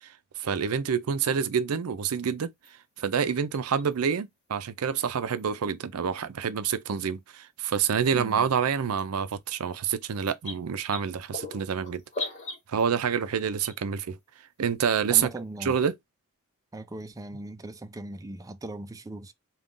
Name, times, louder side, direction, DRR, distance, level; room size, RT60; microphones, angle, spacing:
voice 1, 0.4-2.5 3.0-12.3 12.7-14.2 14.6-15.3 15.6-15.9, right 7 dB, 85° right, 0.5 m, -27 dB
sound 1, 2.6-2.7 3.5-4.0 5.4-5.5 6.9-7.0 8.0-8.2 9.0-9.1 9.3-9.4 9.8-9.9 10.2-12.9 13.7-14.0 15.0-15.1 15.4-15.5, left 3 dB, 35° left, 1.9 m, -38 dB
voice 2, 8.1-8.4 15.1-15.7 16.7-19.3, right 2 dB, 15° right, 0.4 m, -39 dB
3.6 x 2.3 x 3.7 m
head